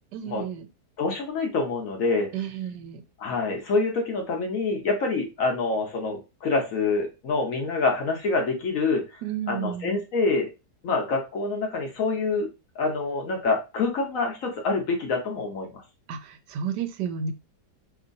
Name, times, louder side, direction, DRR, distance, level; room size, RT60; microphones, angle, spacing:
voice 1, 0.1-0.7 2.3-3.0 9.2-10.0 16.1-17.3, right 8 dB, 85° right, 8 dB, 1.2 m, -32 dB
voice 2, 1.0-2.3 3.2-9.0 9.5-10.5 10.8-12.5 12.8-15.8, left 3 dB, 60° left, 2 dB, 1.1 m, -26 dB
3.1 x 2.7 x 2.6 m, 0.27 s
omnidirectional pair, 1.8 m